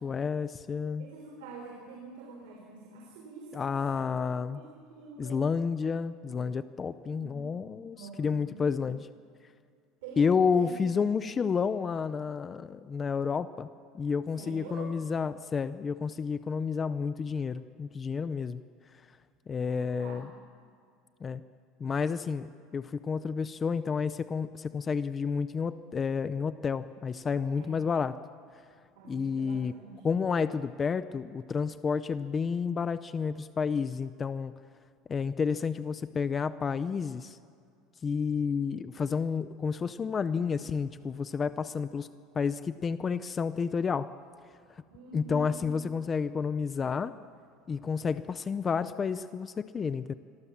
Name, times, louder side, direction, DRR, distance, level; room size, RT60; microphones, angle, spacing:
voice 1, 0.0-1.1 3.5-4.6 5.2-9.1 10.2-13.7 13.9-18.6 19.5-20.3 21.2-21.4 21.8-22.5 22.7-28.1 29.1-29.7 30.0-34.5 35.1-37.4 38.0-42.1 42.3-44.1 45.1-47.1 47.7-50.1, left 5 dB, 20° left, 13 dB, 0.6 m, -30 dB
voice 2, 1.0-4.0 4.5-5.6 7.0-7.5 7.9-8.6 10.0-10.9 14.3-14.9 19.5-20.3 27.5-27.9 29.0-30.0 44.9-45.6, right 4 dB, 85° right, 0 dB, 5.7 m, -46 dB
27.5 x 22.5 x 7.3 m, 2.3 s
cardioid pair, 165°, 0 cm